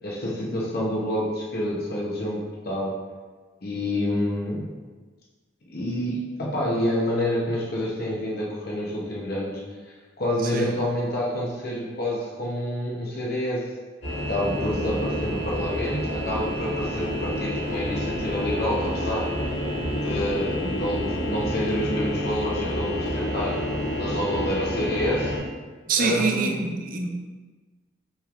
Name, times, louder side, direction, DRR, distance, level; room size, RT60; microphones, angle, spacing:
voice 1, 0.0-3.0 3.6-4.7 5.7-9.6 10.2-13.7 14.3-19.3 20.0-23.6 24.0-25.3 26.0-26.6, left 1 dB, 60° left, -4 dB, 0.9 m, -28 dB
sound 1, 14.0-25.4, equal, 85° left, 1.5 m, -29 dB
voice 2, 25.9-27.1, right 4 dB, 50° right, 4 dB, 0.5 m, -25 dB
6.0 x 3.2 x 2.5 m, 1.3 s
head